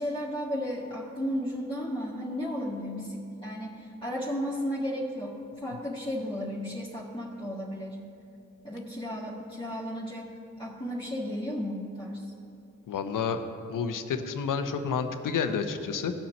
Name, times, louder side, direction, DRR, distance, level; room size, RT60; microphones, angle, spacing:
voice 1, 0.0-8.0 8.6-10.3 10.6-12.3, equal, 15° left, -6 dB, 1.7 m, -34 dB
voice 2, 12.9-13.4 13.7-16.1, left 6 dB, 75° left, 8 dB, 0.8 m, -30 dB
16.0 x 5.8 x 4.3 m, 2.7 s
supercardioid pair, 40°, 32 cm